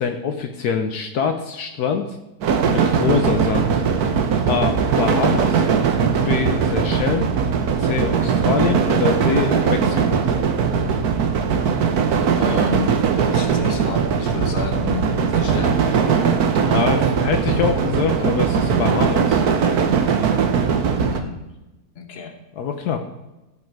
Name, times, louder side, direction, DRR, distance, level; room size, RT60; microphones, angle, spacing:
voice 1, 0.0-2.0 2.6-3.7 4.5-5.6 6.1-7.3 7.8-10.2 16.6-19.4 22.6-23.0, left 6 dB, 70° left, 5 dB, 1.3 m, -24 dB
sound 1, 2.4-21.2, right 6 dB, 70° right, 1.5 m, -19 dB
voice 2, 12.3-15.7 21.0-21.4 21.9-22.4, left 6 dB, 40° left, 5 dB, 1.4 m, -31 dB
16.0 x 5.6 x 4.7 m, 1.0 s
omnidirectional pair, 1.8 m